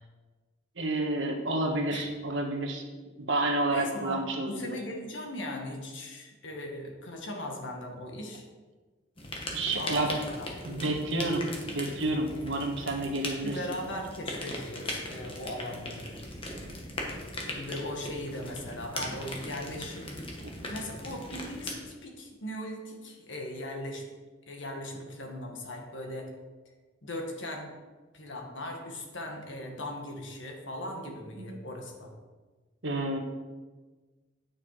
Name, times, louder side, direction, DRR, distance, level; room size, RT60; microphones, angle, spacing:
voice 1, 0.8-2.8 3.2-4.8 9.5-10.1 10.6-11.4 11.7-13.6 31.4-31.5 32.8-33.2, right 2 dB, 75° right, 3 dB, 1.4 m, -30 dB
voice 2, 3.7-8.4 9.8-10.9 13.4-16.1 17.3-20.2 20.7-24.0 24.5-26.3 27.0-27.7 28.1-32.1, left 1 dB, 75° left, 2 dB, 1.7 m, -38 dB
sound 1, 9.2-21.7, left 1 dB, 30° left, 1.5 m, -39 dB
9.6 x 6.4 x 4.9 m, 1.3 s
head